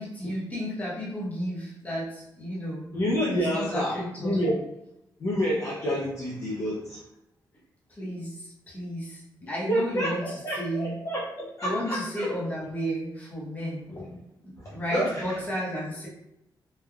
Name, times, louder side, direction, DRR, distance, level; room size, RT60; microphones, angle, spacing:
voice 1, 0.0-2.9 3.3-4.4 7.9-9.2 9.5-10.2 10.6-10.9 11.6-13.8 14.4-16.1, equal, 20° left, -6 dB, 0.9 m, -33 dB
voice 2, 2.9-4.6 5.2-7.0 9.4-12.3 13.9-14.1 14.6-15.4, equal, 40° left, -6 dB, 0.5 m, -29 dB
3.2 x 2.2 x 2.3 m, 0.84 s
wide cardioid pair, 165°, 8 cm